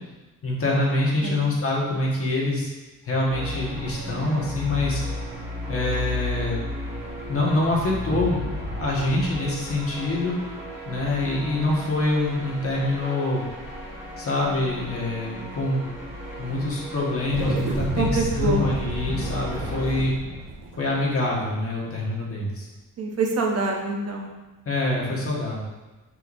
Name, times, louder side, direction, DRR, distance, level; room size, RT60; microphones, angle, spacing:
voice 1, 0.4-2.7 3.0-5.0 5.7-6.6 7.3-10.4 10.9-13.4 14.2-15.9 16.4-20.1 20.8-22.7 24.6-25.6, left 2 dB, 45° left, -4 dB, 1.5 m, -25 dB
sound 1, 3.3-20.0, left 1 dB, 10° right, 1.8 m, -34 dB
sound 2, 17.3-22.0, right 2 dB, 85° right, 1.3 m, -32 dB
voice 2, 18.0-18.7 23.0-24.3, right 3 dB, 50° right, 1 dB, 0.8 m, -25 dB
6.5 x 5.8 x 2.6 m, 1.1 s
wide cardioid pair, 175°, 32 cm